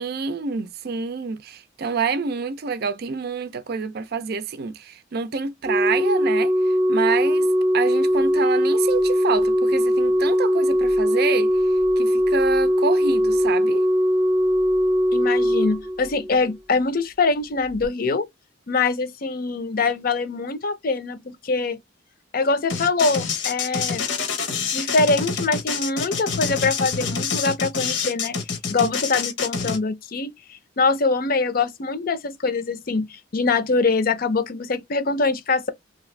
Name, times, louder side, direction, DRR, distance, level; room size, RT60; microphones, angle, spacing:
voice 1, 0.0-7.5 7.7-11.5 12.0-13.9 28.8-28.9, right 5 dB, 55° right, 0.5 m, -27 dB
Organ, 5.7-16.5 17.7-17.9, equal, 15° right, 0.7 m, -20 dB
voice 2, 15.1-18.3 18.7-21.8 22.3-24.1 24.7-28.4 28.7-35.7, left 3 dB, 50° left, 0.6 m, -23 dB
sound 1, 22.7-29.8, left 5 dB, 80° left, 0.9 m, -26 dB
2.8 x 2.4 x 3.1 m
head